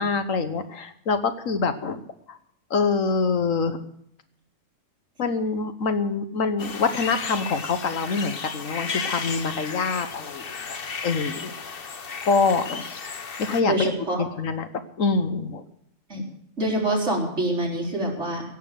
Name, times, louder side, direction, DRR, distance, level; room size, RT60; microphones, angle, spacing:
voice 1, 0.0-2.0 2.3-2.4 2.7-3.9 5.2-10.8 11.0-11.8 12.2-12.8 13.4-13.9 14.2-14.7 15.0-15.6, left 4 dB, 75° left, 10 dB, 1.5 m, -25 dB
sound 1, 6.6-13.6, left 5 dB, 45° left, 1.2 m, -34 dB
voice 2, 13.6-14.2 16.1-16.2 16.6-18.4, right 1 dB, 60° right, -2 dB, 4.3 m, -25 dB
16.5 x 7.5 x 8.9 m, 0.72 s
omnidirectional pair, 1.4 m